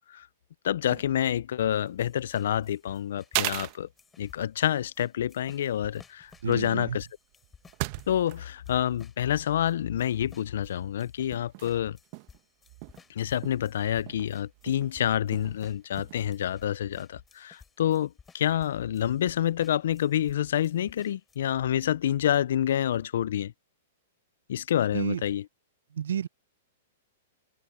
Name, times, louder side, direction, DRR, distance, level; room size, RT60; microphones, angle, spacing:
voice 1, 0.6-3.9 4.2-7.1 8.1-12.0 13.1-23.5 24.5-25.4, left 10 dB, 70° left, 0.5 m, -28 dB
sound 1, 0.9-1.2 1.5-2.0 2.5-2.6 3.3-3.8 4.4-4.7 5.0-5.1 6.2-8.6 8.8-10.1 10.6-10.7 11.3-11.7 12.1-12.4 12.7-14.9 15.3-15.6 15.8-16.3, right 25 dB, 45° right, 1.1 m, -37 dB
sound 2, 1.7-20.4 20.6-21.4, left 5 dB, 15° left, 6.1 m, -56 dB
voice 2, 6.4-7.0 24.9-25.2 25.9-26.3, right 9 dB, 80° right, 0.8 m, -31 dB
hypercardioid pair, 125°, 0 cm